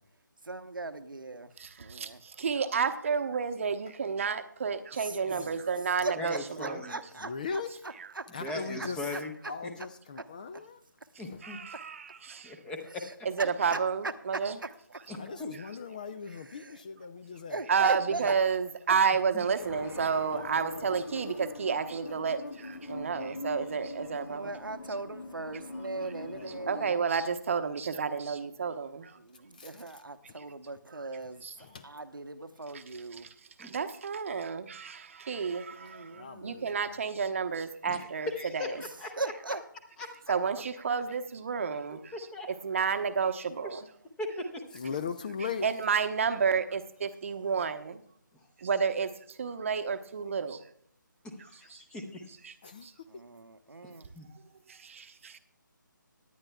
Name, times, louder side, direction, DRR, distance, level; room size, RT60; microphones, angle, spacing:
voice 1, 0.4-1.5 1.8-2.2 4.9-5.4 6.0-8.3 8.7-9.5 10.2-10.3 10.5-10.6 11.7-11.8 13.0-15.0 16.3-16.8 17.5-18.3 18.9-19.0 24.1-27.0 29.1-31.4 31.8-33.3 35.7-36.8 39.2-39.6 44.8-44.9 53.1-54.1, right 3 dB, 80° right, 8 dB, 0.9 m, -39 dB
voice 2, 1.6-6.8 11.4-12.6 13.2-14.6 17.7-24.5 26.7-29.2 31.4-31.5 33.6-38.6 40.3-42.1 42.6-43.9 45.6-48.0 48.6-50.6 51.7-51.8 52.4-52.5 52.8-52.9 54.7-55.4, right 6 dB, 40° right, 9 dB, 0.8 m, -31 dB
voice 3, 5.2-5.6 7.2-7.7 8.3-9.0 9.4-10.8 11.3-11.4 15.2-17.6 18.1-18.4 20.3-21.2 22.8-23.5 26.2-26.7 29.6-29.8 30.3-30.4 31.6-31.9 36.1-36.6 36.9-37.0 44.7-45.7 52.6-53.1, left 5 dB, 25° left, 11 dB, 0.4 m, -40 dB
voice 4, 6.2-7.0 8.4-9.3 11.2-11.6 12.4-13.0 15.1-15.5 19.3-19.4 33.6-33.7 37.9-39.1 40.0-40.1 42.1-42.5 43.6-43.7 44.2-44.6 51.2-52.2 54.1-54.3, left 2 dB, 5° left, 4 dB, 0.8 m, -38 dB
sound 1, 19.6-26.9, left 2 dB, 85° left, 1.4 m, -43 dB
18.0 x 10.5 x 2.3 m, 0.63 s
figure-of-eight pair, 155°, 11 cm